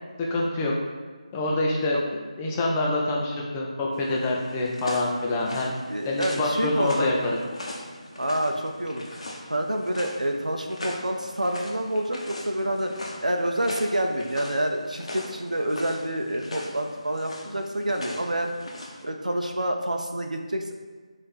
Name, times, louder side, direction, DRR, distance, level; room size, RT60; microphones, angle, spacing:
voice 1, 0.3-0.7 1.3-2.0 2.4-5.7 6.0-7.3, left 2 dB, 10° left, -2 dB, 0.3 m, -26 dB
sound 1, 3.9-19.0, left 1 dB, 55° left, 0.7 m, -40 dB
voice 2, 5.9-7.1 8.1-9.2 9.5-12.9 13.2-18.5 19.0-20.7, right 1 dB, 85° right, 4 dB, 0.5 m, -28 dB
4.2 x 2.5 x 4.0 m, 1.4 s
figure-of-eight pair, 160°, 4 cm